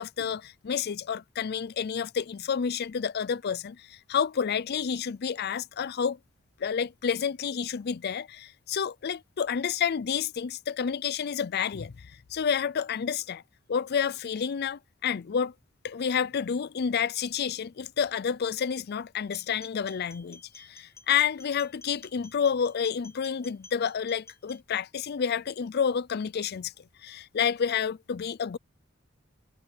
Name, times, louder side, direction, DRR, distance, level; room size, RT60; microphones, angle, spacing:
voice 1, 0.0-6.2 6.6-13.4 13.7-15.5 15.8-28.6, left 7 dB, 50° left, 0.4 m, -29 dB
sound 1, 19.3-24.6, left 3 dB, 15° left, 0.8 m, -53 dB
head